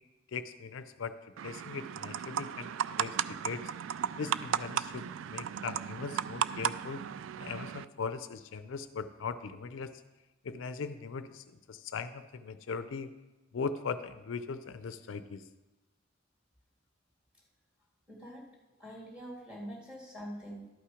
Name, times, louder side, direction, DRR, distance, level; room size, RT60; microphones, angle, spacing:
voice 1, 0.3-1.2 1.4-3.2 3.4-7.0 7.4-10.0 10.4-13.1 13.5-15.4, left 5 dB, 75° left, 12 dB, 0.4 m, -39 dB
sound 1, 1.4-7.8, right 9 dB, 75° right, 0.3 m, -35 dB
voice 2, 18.1-18.4 18.8-20.7, equal, 5° right, -2 dB, 2.0 m, -44 dB
12.0 x 5.8 x 4.9 m, 1.1 s
head